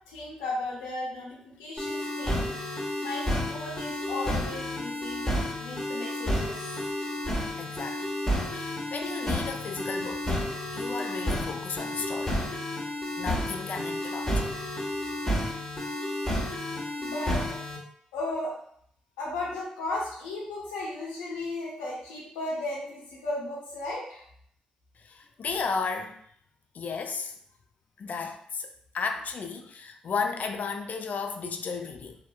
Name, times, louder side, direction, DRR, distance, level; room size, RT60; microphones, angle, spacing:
voice 1, 0.1-2.5 3.0-5.3 5.6-6.7 17.0-17.4 18.1-18.5 19.2-24.2, left 2 dB, 85° left, -4 dB, 0.8 m, -35 dB
sound 1, 1.8-17.8, left 1 dB, 10° left, 1.1 m, -31 dB
voice 2, 7.6-8.1 8.5-12.4 13.2-14.5 25.0-26.2 26.7-27.3 28.0-28.7 28.9-32.2, left 5 dB, 55° left, 5 dB, 0.4 m, -34 dB
2.8 x 2.2 x 2.2 m, 0.64 s
hypercardioid pair, 40°, 3 cm